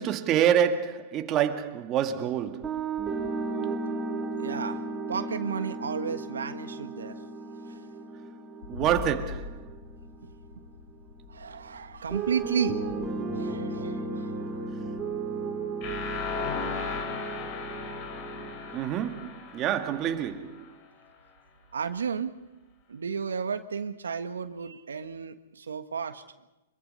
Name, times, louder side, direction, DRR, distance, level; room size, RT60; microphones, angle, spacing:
voice 1, 0.0-2.8 8.7-9.6 18.7-20.7, right 9 dB, 30° right, 2.0 m, -27 dB
sound 1, 2.6-10.7 12.1-18.8, right 4 dB, 15° right, 4.8 m, -35 dB
voice 2, 4.4-4.8 5.1-7.2 11.3-12.8 13.3-14.6 21.7-22.3 22.9-26.2, right 6 dB, 90° right, 1.5 m, -33 dB
sound 2, 8.6-14.2, left 4 dB, 80° left, 6.1 m, -43 dB
sound 3, 15.8-20.7, left 6 dB, 40° left, 5.3 m, -36 dB
26.0 x 22.5 x 5.6 m
hypercardioid pair, 130°, 0 cm